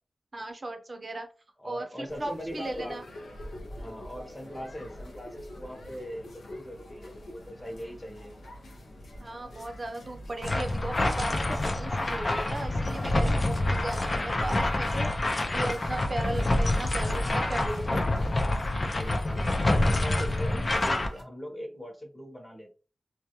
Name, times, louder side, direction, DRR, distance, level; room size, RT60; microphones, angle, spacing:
voice 1, 0.3-1.3 1.6-3.0 9.2-18.1, right 2 dB, 45° right, 5 dB, 0.6 m, -37 dB
voice 2, 1.6-3.0 3.7-8.3 13.6-13.9 18.8-19.5 19.8-22.7, equal, 10° left, 1 dB, 0.8 m, -41 dB
sound 1, 2.1-21.2, equal, 90° left, 0.6 m, -44 dB
sound 2, 10.4-21.1, left 1 dB, 40° left, 0.4 m, -27 dB
2.3 x 2.1 x 2.8 m, 0.34 s
wide cardioid pair, 70°, 0 cm